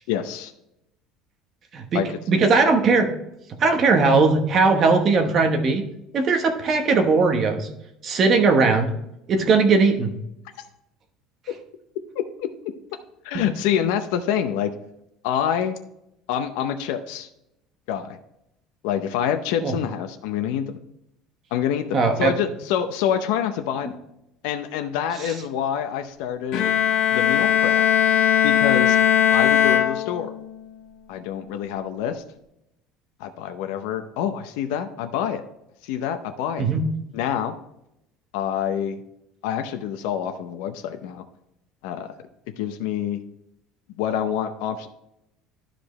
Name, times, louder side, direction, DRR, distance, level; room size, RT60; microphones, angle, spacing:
voice 1, 0.1-0.5 1.9-2.5 12.2-12.5 13.2-14.7 15.2-15.8 16.3-17.3 17.9-18.2 18.8-20.8 21.5-24.0 24.4-26.7 27.1-27.8 28.4-29.0 29.3-30.3 31.1-32.2 33.2-35.4 35.8-36.7 37.1-37.6 38.3-39.0 39.4-41.2 41.8-42.1 42.6-43.2 44.0-44.9, left 9 dB, 75° left, 7 dB, 0.7 m, -26 dB
voice 2, 1.7-3.1 3.6-5.8 6.1-7.7 8.0-8.9 9.3-10.1 13.3-13.4 19.6-19.7 21.9-22.3 25.2-25.3 36.6-36.8, right 4 dB, 30° right, 5 dB, 1.0 m, -19 dB
Bowed string instrument, 26.5-30.5, left 9 dB, 50° left, 1.0 m, -19 dB
11.5 x 5.0 x 3.1 m, 0.82 s
cardioid pair, 180°, 0 cm